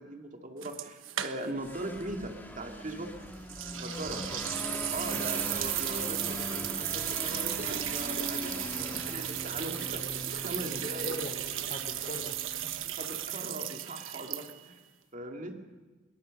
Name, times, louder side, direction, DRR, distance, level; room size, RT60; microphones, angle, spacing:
voice 1, 0.0-3.1 3.7-4.2 4.9-8.5 9.0-10.0 10.3-11.1 13.0-14.7 15.1-15.6, right 1 dB, 40° right, 3 dB, 2.3 m, -40 dB
sound 1, 0.6-1.7 2.0-2.1 3.5-14.8, right 12 dB, 80° right, 1.2 m, -35 dB
sound 2, 1.6-13.3, left 1 dB, 10° left, 2.5 m, -41 dB
voice 2, 4.0-4.5 5.1-5.4 8.7-9.2 10.7-11.4 11.7-12.7, left 1 dB, 40° left, 7 dB, 2.9 m, -43 dB
24.0 x 22.0 x 6.5 m, 1.3 s
head